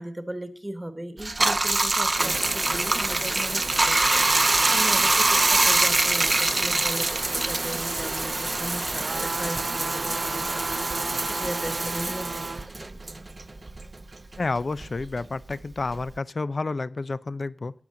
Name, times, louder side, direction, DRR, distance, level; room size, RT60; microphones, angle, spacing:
voice 1, 0.0-12.7, right 1 dB, 10° right, 11 dB, 1.3 m, -37 dB
Bathtub (filling or washing), 1.2-14.0 14.3-16.2, right 2 dB, 35° right, 0.7 m, -24 dB
sound 1, 9.0-12.6 13.2-13.3, right 4 dB, 70° right, 2.0 m, -35 dB
voice 2, 14.4-17.7, left 3 dB, 45° left, 17 dB, 0.5 m, -30 dB
13.5 x 9.1 x 3.7 m, 0.42 s
wide cardioid pair, 100°, 0 cm